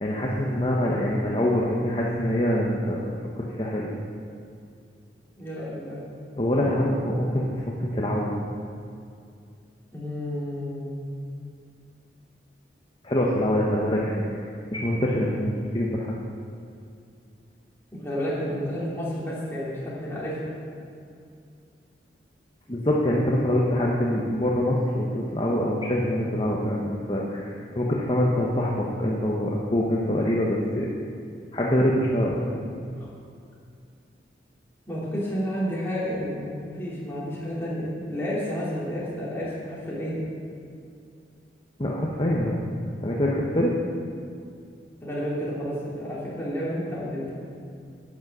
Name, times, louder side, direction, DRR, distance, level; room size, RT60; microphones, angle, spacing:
voice 1, 0.0-3.1 3.6-3.9 6.4-8.4 13.0-14.2 14.7-16.1 22.7-30.9 31.5-32.6 41.8-42.6 43.0-43.7, left 1 dB, 30° left, -3 dB, 1.0 m, -24 dB
voice 2, 5.4-6.0 9.9-11.0 17.9-20.5 34.9-40.2 45.0-47.3, equal, 15° left, -8 dB, 3.3 m, -31 dB
11.5 x 8.4 x 6.2 m, 2.4 s
head